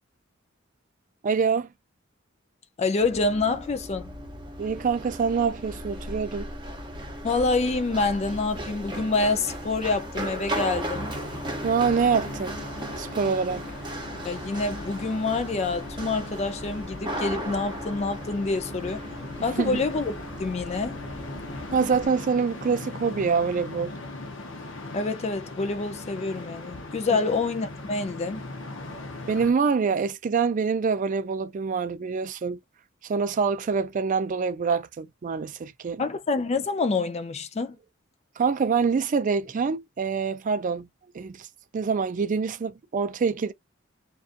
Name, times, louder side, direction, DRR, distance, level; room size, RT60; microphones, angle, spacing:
voice 1, 1.2-1.7 4.6-6.5 11.6-12.6 13.0-13.7 19.6-19.8 21.7-23.9 28.9-29.0 29.3-32.6 33.0-36.0 38.4-40.9 41.1-41.5 41.7-43.5, right 5 dB, 40° right, 0.4 m, -25 dB
voice 2, 2.8-4.1 7.2-11.1 14.2-19.0 19.4-21.0 24.9-28.5 36.0-37.8, left 3 dB, 30° left, 0.4 m, -27 dB
Run, 3.0-22.1, right 1 dB, 25° right, 0.9 m, -36 dB
sound 1, 10.9-29.5, left 2 dB, 65° left, 0.8 m, -39 dB
2.5 x 2.3 x 2.5 m
head